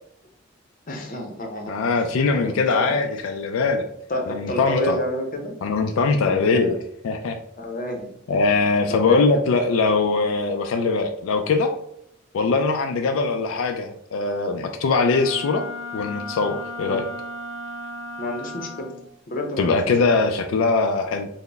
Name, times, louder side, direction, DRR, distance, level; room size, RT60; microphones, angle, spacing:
voice 1, 0.9-3.0 4.1-5.5 6.2-6.7 7.6-8.1 8.9-9.4 16.8-17.0 18.2-18.9 19.3-19.8, left 1 dB, 40° left, 3 dB, 0.6 m, -29 dB
voice 2, 1.7-3.9 4.3-5.0 5.6-6.8 7.0-7.4 8.3-11.7 12.3-15.6 15.9-17.1 19.6-21.3, left 4 dB, 85° left, 6 dB, 0.3 m, -21 dB
Wind instrument woodwind instrument, 15.0-19.1, left 1 dB, 30° right, 1.5 m, -35 dB
4.1 x 2.1 x 3.3 m, 0.73 s
head